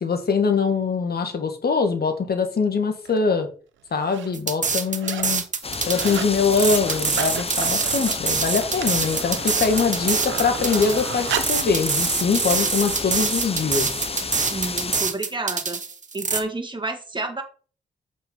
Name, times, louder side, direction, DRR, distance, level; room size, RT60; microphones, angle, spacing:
voice 1, 0.0-3.5 3.9-5.4 5.9-13.9, left 5 dB, 55° left, 6 dB, 1.8 m, -23 dB
sound 1, 3.1-3.2 3.9-4.3 4.7-5.4 5.7-6.4 6.7-11.7 12.3-12.4, right 9 dB, 90° right, 1.0 m, -33 dB
sound 2, 4.3-16.4, right 5 dB, 40° right, 1.2 m, -25 dB
sound 3, 5.6-15.0, left 4 dB, 30° left, 1.0 m, -31 dB
voice 2, 14.5-15.8 16.1-17.4, right 2 dB, 25° right, 4 dB, 2.2 m, -30 dB
7.5 x 5.5 x 4.5 m, 0.39 s
supercardioid pair, 55°, 19 cm